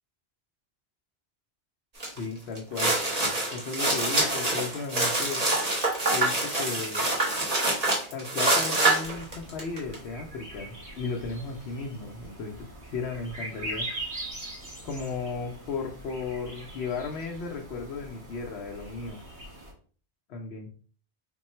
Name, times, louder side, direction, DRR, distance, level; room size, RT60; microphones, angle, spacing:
sound 1, 2.0-2.2 2.6-9.9, right 2 dB, 35° right, 1.3 m, -26 dB
voice 1, 2.1-2.9 3.5-5.4 6.1-7.1 8.1-12.6 12.9-13.9 14.8-19.2 20.3-20.7, left 4 dB, 75° left, 0 dB, 0.9 m, -35 dB
Swainson's Thrush, 9.0-19.7, right 1 dB, 80° right, 1.8 m, -42 dB
3.7 x 2.2 x 4.2 m, 0.42 s
omnidirectional pair, 1.1 m